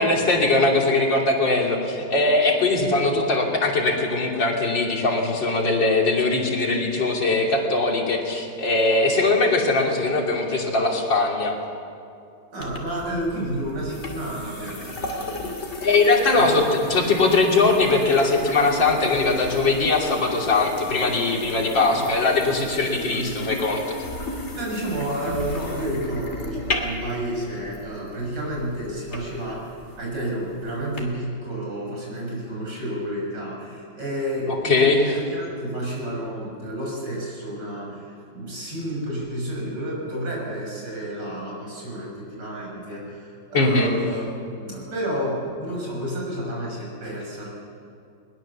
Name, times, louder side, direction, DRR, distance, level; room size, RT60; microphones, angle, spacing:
voice 1, 0.0-11.5 15.8-24.0 34.5-35.1 43.5-43.9, left 3 dB, 80° left, 0 dB, 3.7 m, -21 dB
voice 2, 12.5-15.5 16.3-16.9 21.9-22.1 22.8-23.5 24.5-44.3 44.5-47.5, right 1 dB, 70° right, -3 dB, 6.9 m, -30 dB
sound 1, 12.6-31.0, left 2 dB, 35° left, 2.9 m, -35 dB
21.5 x 21.0 x 7.1 m, 2.5 s
omnidirectional pair, 2.0 m